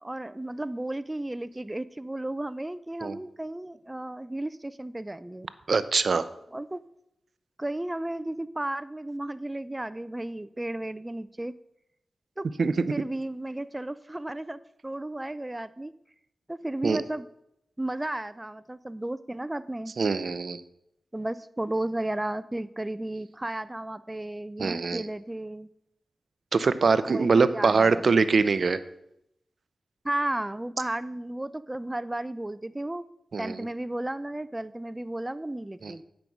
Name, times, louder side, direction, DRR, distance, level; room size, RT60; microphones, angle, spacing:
voice 1, 0.0-5.5 6.5-6.8 7.6-11.6 12.4-12.5 12.9-15.9 16.5-17.3 17.8-19.9 21.1-25.7 27.0-28.2 30.0-33.1 33.4-36.0, right 1 dB, 20° right, 15 dB, 0.4 m, -33 dB
voice 2, 5.7-6.3 12.6-12.9 16.8-17.0 20.0-20.6 24.6-25.0 26.5-28.8 33.3-33.7 35.8-35.9, right 4 dB, 65° right, 14 dB, 0.6 m, -23 dB
9.1 x 5.2 x 6.1 m, 0.80 s
cardioid pair, 45°, 0 cm